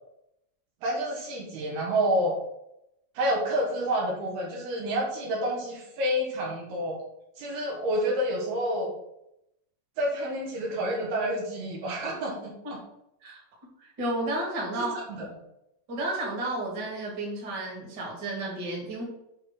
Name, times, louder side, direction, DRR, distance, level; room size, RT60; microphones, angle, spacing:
voice 1, 0.8-2.3 3.1-7.0 7.4-8.9 10.0-12.8 14.8-15.3, equal, 70° right, -2 dB, 3.2 m, -29 dB
voice 2, 13.8-15.0 15.9-19.0, right 1 dB, 30° right, -3 dB, 2.3 m, -32 dB
8.2 x 3.7 x 6.2 m, 0.82 s
omnidirectional pair, 5.0 m